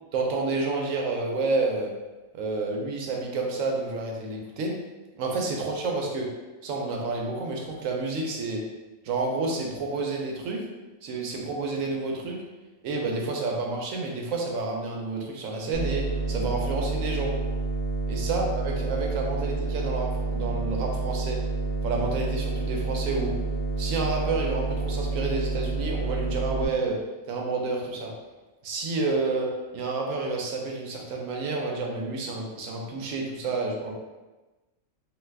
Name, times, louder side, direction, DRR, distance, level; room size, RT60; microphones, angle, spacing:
voice 1, 0.1-1.9 2.3-4.8 5.1-6.3 6.6-8.6 9.0-10.6 11.0-12.4 12.8-17.3 18.1-21.4 21.8-23.3 23.8-27.0 27.3-28.1 28.6-33.9, right 3 dB, 75° right, 0 dB, 1.0 m, -29 dB
sound 1, 15.7-26.7, right 3 dB, 35° right, 0.4 m, -29 dB
2.6 x 2.3 x 3.3 m, 1.1 s
omnidirectional pair, 1.4 m